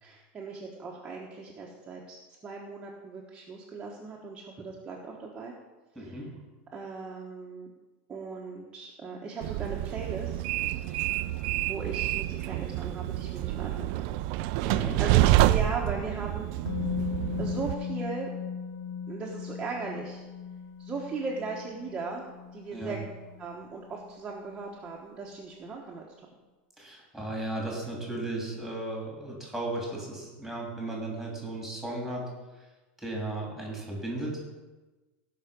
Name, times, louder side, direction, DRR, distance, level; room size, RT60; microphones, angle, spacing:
voice 1, 0.0-2.2 2.4-5.5 5.9-6.2 6.7-7.7 8.1-10.5 11.7-14.1 14.6-16.5 17.4-18.3 19.1-20.2 20.8-23.0 23.4-26.3, right 4 dB, 15° right, -3 dB, 1.3 m, -38 dB
voice 2, 5.9-6.3 14.6-15.2 22.7-23.0 26.8-32.3 33.0-34.5, right 2 dB, ahead, -2 dB, 3.3 m, -35 dB
Train, 9.4-17.7, right 15 dB, 55° right, 0.4 m, -28 dB
Musical instrument, 16.7-24.6 24.8-25.0, left 7 dB, 55° left, 1.4 m, -38 dB
17.0 x 5.8 x 5.3 m, 1.2 s
supercardioid pair, 155°, 6 cm